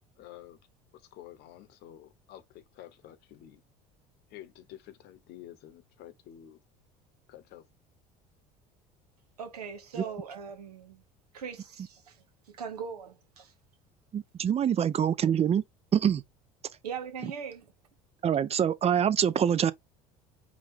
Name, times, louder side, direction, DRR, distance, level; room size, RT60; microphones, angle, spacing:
voice 1, 0.1-0.6 0.9-3.6 4.3-6.6 7.3-7.6, left 12 dB, 60° left, 0.9 m, -49 dB
voice 2, 9.4-11.0 11.3-12.2 12.5-13.5 16.8-17.6, right 6 dB, 90° right, 1.1 m, -40 dB
voice 3, 14.1-15.6 15.9-16.2 18.2-19.7, right 8 dB, 30° right, 0.6 m, -25 dB
4.8 x 2.3 x 3.4 m
hypercardioid pair, 70°, 19 cm